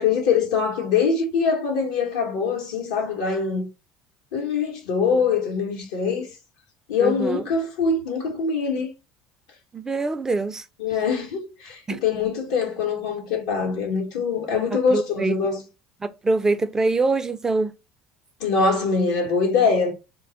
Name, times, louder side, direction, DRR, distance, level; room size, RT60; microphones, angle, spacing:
voice 1, 0.0-3.7 4.3-6.3 6.9-8.9 10.8-15.6 18.4-19.9, left 5 dB, 85° left, 0.8 m, -23 dB
voice 2, 7.0-7.4 9.7-10.6 11.9-12.0 14.7-15.4 16.0-17.7, right 3 dB, 20° right, 0.4 m, -24 dB
2.2 x 2.0 x 3.8 m
supercardioid pair, 80°, 3 cm